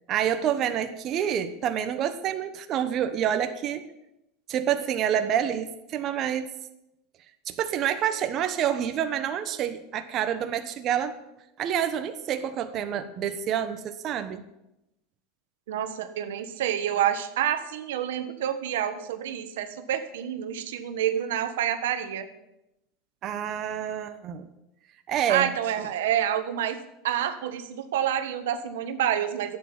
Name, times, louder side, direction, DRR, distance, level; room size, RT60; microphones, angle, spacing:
voice 1, 0.1-3.8 4.5-6.5 7.5-11.2 11.6-14.4 23.2-24.5 25.1-25.5 25.8-25.9, right 9 dB, 45° right, 8 dB, 1.1 m, -28 dB
voice 2, 15.7-22.3 25.3-26.8 27.0-29.6, right 10 dB, 85° right, 9 dB, 1.3 m, -28 dB
11.0 x 8.8 x 8.9 m, 0.89 s
supercardioid pair, 120°, 0 cm